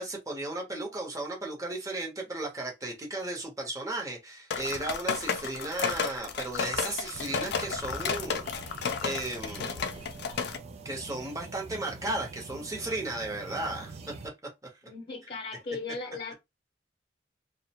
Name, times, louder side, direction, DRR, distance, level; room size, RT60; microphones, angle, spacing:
voice 1, 0.0-8.5 9.0-9.9 10.8-14.0 14.6-14.7, right 2 dB, 20° right, 0.8 m, -35 dB
sound 1, 4.5-10.6, left 6 dB, 60° left, 0.4 m, -32 dB
sound 2, 7.1-14.3, right 3 dB, 35° right, 0.3 m, -45 dB
voice 2, 14.8-16.3, left 4 dB, 35° left, 0.7 m, -37 dB
2.4 x 2.1 x 2.8 m
head